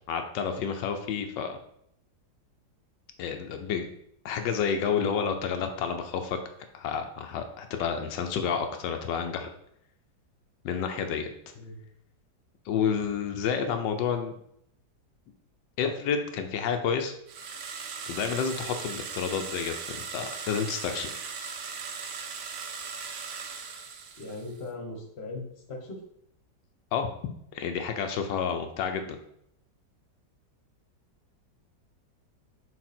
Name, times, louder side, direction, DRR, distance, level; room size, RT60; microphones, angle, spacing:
voice 1, 0.1-1.6 3.2-3.9 4.2-6.4 6.7-9.5 10.6-11.3 12.7-14.3 15.8-17.1 18.1-19.7 20.1-21.1 26.9-27.1 27.5-29.2, left 7 dB, 85° left, 6 dB, 1.3 m, -29 dB
sound 1, 17.3-24.6, right 5 dB, 60° right, 0.8 m, -38 dB
voice 2, 24.1-26.0, left 2 dB, 40° left, 1 dB, 1.3 m, -39 dB
6.3 x 4.2 x 4.3 m, 0.73 s
omnidirectional pair, 1.9 m